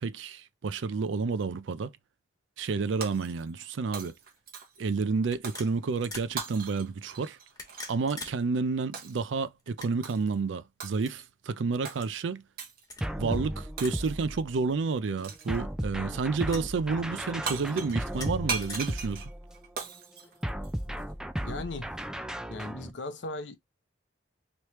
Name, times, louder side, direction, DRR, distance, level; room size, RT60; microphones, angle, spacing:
voice 1, 0.0-1.9 2.6-4.1 4.8-7.4 7.9-12.4 13.2-19.3, right 4 dB, 80° right, 0.4 m, -30 dB
Shatter, 3.0-3.7 3.9-4.9 5.4-5.7 6.4-7.9 8.9-9.3 10.0-10.4 10.8-11.3 11.8-12.0 12.6-12.9 13.8-14.3 15.2-15.6 17.2-17.3 17.5-21.0, right 5 dB, 55° right, 0.9 m, -39 dB
sound 1, 4.2-4.4 5.3-6.4 7.4-8.4 8.7-8.8 9.6-10.2 11.0-11.1 12.0-12.1 12.8-13.1 13.8-14.0 14.3-14.4 15.3-15.9 16.5-16.7 17.8-18.8, left 2 dB, 20° left, 1.2 m, -44 dB
sound 2, 13.0-14.7 15.5-19.7 20.4-22.9, equal, 5° right, 0.3 m, -35 dB
voice 2, 13.2-13.5 20.2-20.3 21.4-22.0 22.5-23.6, left 2 dB, 70° left, 0.7 m, -38 dB
3.2 x 3.1 x 3.0 m
head